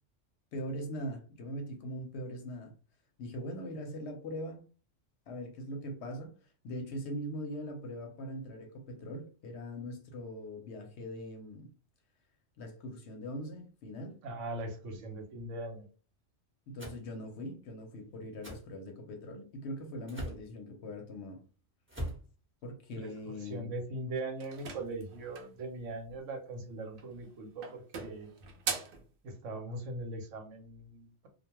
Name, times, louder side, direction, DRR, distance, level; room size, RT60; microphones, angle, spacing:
voice 1, 0.5-2.7 3.2-4.6 5.3-6.3 6.6-11.7 12.6-14.2 16.7-21.4 22.6-23.7, equal, 65° left, 0.9 m, -41 dB
voice 2, 14.2-15.8 23.0-28.3 29.2-31.3, right 2 dB, 75° right, 1.0 m, -40 dB
sound 1, 16.8-17.0 18.4-18.6 20.1-20.4 21.9-22.2, right 1 dB, 10° right, 0.8 m, -39 dB
sound 2, 24.4-25.6 26.9-27.3 27.6-29.1, right 6 dB, 60° right, 0.6 m, -40 dB
2.3 x 2.2 x 2.9 m
omnidirectional pair, 1.3 m